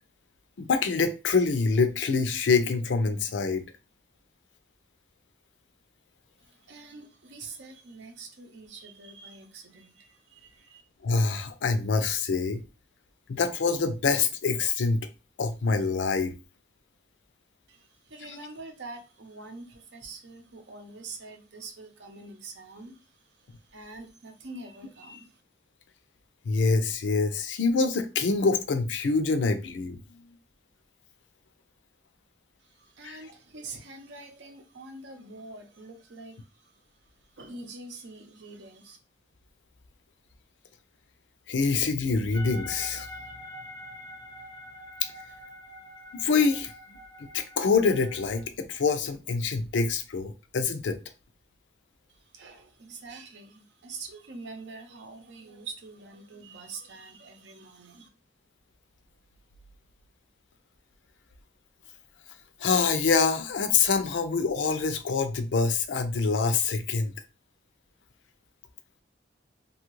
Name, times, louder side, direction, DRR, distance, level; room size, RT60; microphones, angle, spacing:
voice 1, 0.6-3.6 11.0-12.6 13.3-15.1 15.4-16.3 26.5-30.2 33.0-33.2 41.5-43.1 46.1-46.7 47.3-51.0 62.6-67.1, left 4 dB, 85° left, 0.5 m, -25 dB
voice 2, 6.7-10.8 17.7-23.0 23.7-25.3 32.8-36.4 37.4-39.0 52.3-58.1, right 3 dB, 80° right, 0.7 m, -45 dB
sound 1, 42.3-48.4, left 1 dB, 25° left, 0.4 m, -45 dB
2.7 x 2.4 x 3.0 m
head